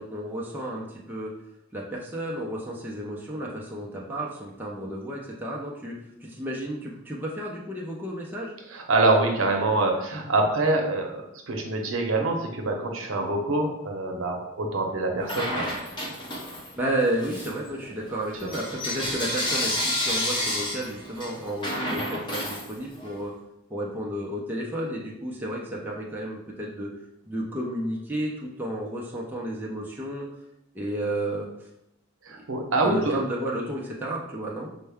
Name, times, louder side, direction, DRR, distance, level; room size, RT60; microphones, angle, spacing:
voice 1, 0.0-1.3 1.7-8.5 16.8-23.3 23.7-26.9 27.3-30.3 30.7-31.5 32.3-32.5 32.8-34.7, right 1 dB, 10° right, -4 dB, 0.5 m, -32 dB
voice 2, 8.7-15.7 18.4-18.5 32.3-33.1, right 2 dB, 80° right, 2 dB, 0.8 m, -25 dB
Bell / Coin (dropping), 15.2-16.8 17.2-23.2, left 1 dB, 25° left, 0.8 m, -30 dB
5.4 x 2.2 x 3.4 m, 0.84 s
head